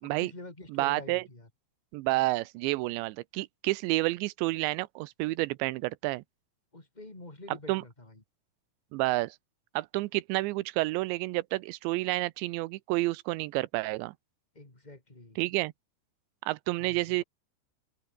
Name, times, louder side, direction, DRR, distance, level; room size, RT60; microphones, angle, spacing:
voice 1, 0.0-1.5 6.7-8.2 14.5-15.4 16.8-17.2, left 2 dB, 10° left, 2.9 m, -47 dB
voice 2, 0.7-1.2 1.9-6.2 7.7-7.8 8.9-9.4 9.8-14.1 15.4-15.7 16.4-17.2, right 20 dB, 85° right, 2.7 m, -30 dB
open air
omnidirectional pair, 5.7 m